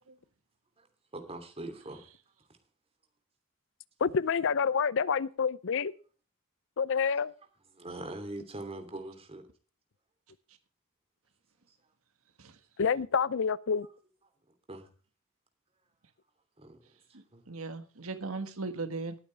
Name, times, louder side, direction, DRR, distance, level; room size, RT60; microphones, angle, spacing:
voice 1, 1.1-2.0 7.7-9.4 14.7-14.9 16.6-16.8 17.3-17.4, right 2 dB, 30° right, 3.0 m, -42 dB
voice 2, 4.0-5.9 6.8-7.3 12.8-13.9, left 6 dB, 60° left, 0.5 m, -28 dB
voice 3, 17.1-19.2, right 3 dB, 75° right, 1.6 m, -38 dB
20.0 x 8.9 x 3.4 m
head